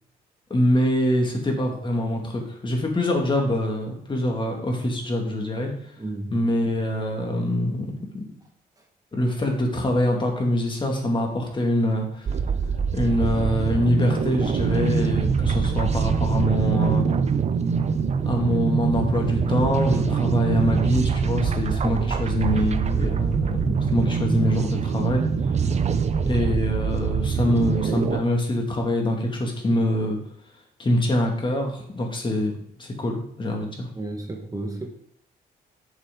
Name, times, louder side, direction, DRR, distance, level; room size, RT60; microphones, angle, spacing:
voice 1, 0.5-5.7 6.3-8.2 9.1-12.4 12.9-17.1 18.2-25.2 26.2-30.2 30.8-33.9, left 1 dB, 30° left, 1 dB, 2.5 m, -24 dB
voice 2, 6.0-6.4 18.5-18.6 27.4-27.7 34.0-34.9, right 2 dB, 20° right, 2 dB, 1.6 m, -33 dB
sound 1, 12.3-28.2, right 6 dB, 40° right, 0.7 m, -24 dB
8.3 x 6.8 x 4.0 m, 0.70 s
cardioid pair, 85°, 17 cm